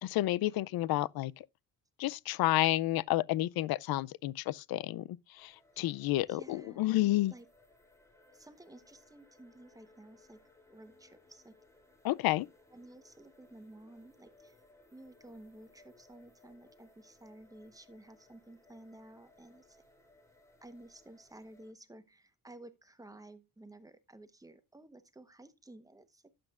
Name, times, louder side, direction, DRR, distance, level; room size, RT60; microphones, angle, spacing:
voice 1, 0.0-1.5 2.0-7.3 12.0-12.5, left 16 dB, 90° left, 0.5 m, -30 dB
sound 1, 5.4-21.7, left 2 dB, 10° left, 2.9 m, -64 dB
voice 2, 6.3-7.5 8.3-10.4 10.7-11.6 12.7-14.6 14.9-19.8 20.6-26.3, right 1 dB, 10° right, 0.9 m, -54 dB
12.0 x 7.8 x 2.4 m
cardioid pair, 125°, 35 cm